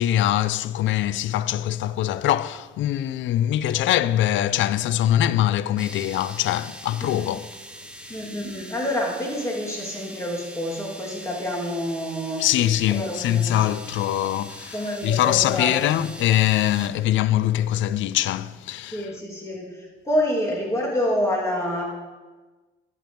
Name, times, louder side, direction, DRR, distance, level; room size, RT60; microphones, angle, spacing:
voice 1, 0.0-7.5 12.4-19.1, left 12 dB, 75° left, 0.4 m, -23 dB
sound 1, 5.8-16.9, right 1 dB, 5° right, 1.0 m, -42 dB
voice 2, 7.0-7.3 8.1-12.4 12.9-13.6 14.7-15.7 18.9-21.9, left 1 dB, 15° left, 3.2 m, -27 dB
12.0 x 9.0 x 3.4 m
cardioid pair, 90°, 20 cm